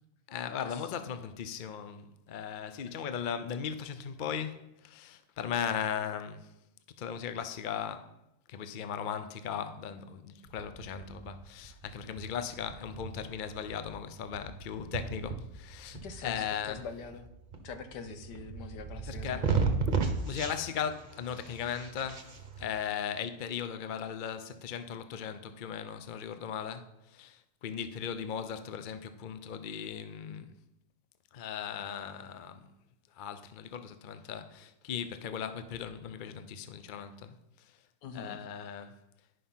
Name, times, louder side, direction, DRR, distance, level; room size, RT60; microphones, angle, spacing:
voice 1, 0.3-6.5 7.0-8.1 8.5-16.8 19.1-19.5 20.3-30.5 31.3-32.6 33.2-37.3 38.1-39.0, left 8 dB, 60° left, 0.5 m, -38 dB
sound 1, 10.5-22.7, right 4 dB, 35° right, 0.9 m, -36 dB
voice 2, 16.0-17.3 17.6-19.6 38.0-38.4, left 5 dB, 80° left, 1.6 m, -44 dB
11.0 x 5.7 x 5.6 m
omnidirectional pair, 1.8 m